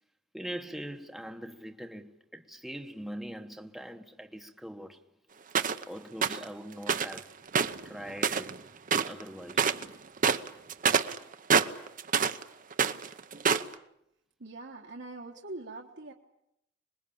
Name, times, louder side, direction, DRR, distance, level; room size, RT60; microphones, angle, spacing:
voice 1, 0.3-5.1 5.8-7.4 7.8-8.6 9.0-9.8, equal, ahead, 1.1 m, -42 dB
sound 1, 5.5-5.8 6.2-6.4 6.9-7.2 7.5-8.6 8.9-9.2 9.5-9.9 10.2-12.4 12.7-13.7, right 6 dB, 45° right, 0.9 m, -26 dB
voice 2, 14.4-16.1, right 2 dB, 60° right, 1.5 m, -43 dB
26.5 x 21.0 x 8.8 m
head